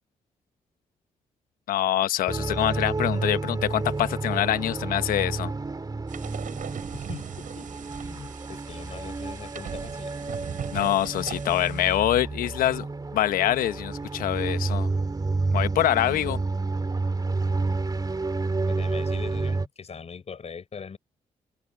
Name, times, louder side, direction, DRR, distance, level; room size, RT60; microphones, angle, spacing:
voice 1, 1.7-5.5 10.7-12.9 13.1-14.9 15.5-16.4, left 12 dB, 85° left, 1.1 m, -25 dB
sound 1, 2.3-19.7, right 3 dB, 25° right, 3.2 m, -30 dB
sound 2, 6.1-12.0, right 8 dB, 65° right, 5.8 m, -39 dB
voice 2, 6.9-7.7 8.0-10.1 18.7-21.0, left 6 dB, 50° left, 5.9 m, -41 dB
open air
cardioid pair, 65°, 14 cm